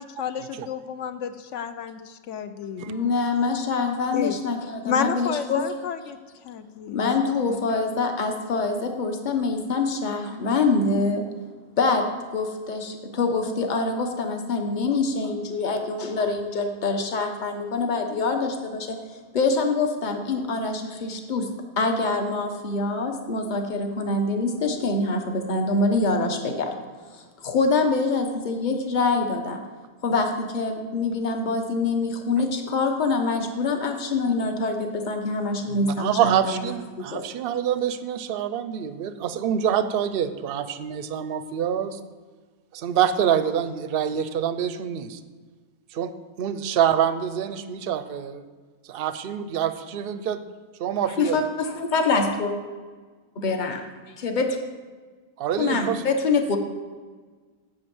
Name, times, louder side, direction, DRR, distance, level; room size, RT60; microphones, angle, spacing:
voice 1, 0.0-2.8 4.1-4.4 4.9-6.2 6.4-7.5, left 8 dB, 65° left, 11 dB, 0.9 m, -30 dB
voice 2, 2.9-5.6 6.9-11.3 11.8-19.0 19.3-21.5 21.8-26.7 27.1-29.6 30.0-37.2 51.2-52.5 53.4-53.8 54.2-54.6 55.6-56.6, left 3 dB, 35° left, 4 dB, 1.1 m, -25 dB
voice 3, 35.7-42.0 42.7-45.2 45.9-46.1 46.4-48.4 48.9-50.4 50.8-51.4 55.4-56.0, right 9 dB, 55° right, 11 dB, 0.6 m, -26 dB
8.8 x 6.4 x 7.9 m, 1.4 s
omnidirectional pair, 1.6 m